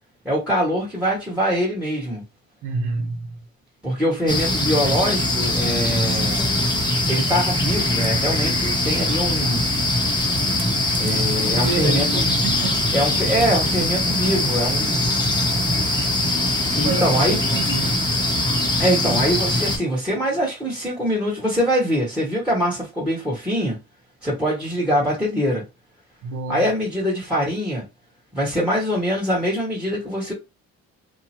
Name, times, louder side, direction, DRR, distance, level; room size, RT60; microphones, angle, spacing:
voice 1, 0.2-2.2 3.8-6.6 7.1-9.6 11.0-12.3 12.9-15.1 16.7-17.4 18.8-23.8 24.2-25.6 26.5-27.8 28.3-30.3, equal, 5° right, 1.2 m, -23 dB
voice 2, 2.6-3.3 11.3-12.9 15.1-15.5 16.8-18.0 26.2-26.7, right 3 dB, 85° right, 0.9 m, -29 dB
sound 1, 4.3-19.8, left 1 dB, 15° left, 1.0 m, -22 dB
2.9 x 2.3 x 2.8 m
cardioid pair, 90°, 30 cm